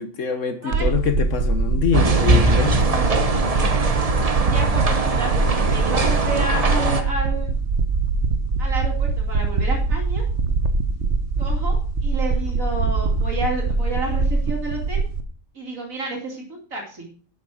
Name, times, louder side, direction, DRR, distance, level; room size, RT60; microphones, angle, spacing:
voice 1, 0.0-2.8, left 7 dB, 70° left, 1.4 m, -24 dB
sound 1, 0.7-15.2, right 4 dB, 60° right, 1.5 m, -22 dB
sound 2, 1.9-7.0, right 3 dB, 30° right, 1.0 m, -21 dB
voice 2, 2.8-3.7 4.4-7.5 8.6-10.2 11.4-15.0 15.5-17.1, right 1 dB, 85° right, 3.1 m, -31 dB
11.5 x 6.9 x 6.3 m
omnidirectional pair, 1.4 m